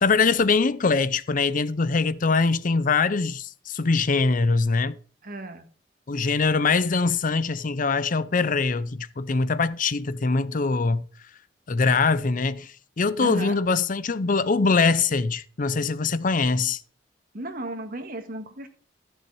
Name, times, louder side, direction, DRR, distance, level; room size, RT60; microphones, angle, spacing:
voice 1, 0.0-5.0 6.1-11.0 11.7-16.8, left 4 dB, 50° left, 0.6 m, -23 dB
voice 2, 5.2-5.7 13.2-13.6 17.3-18.7, right 1 dB, 50° right, 1.6 m, -35 dB
15.0 x 6.4 x 4.7 m
head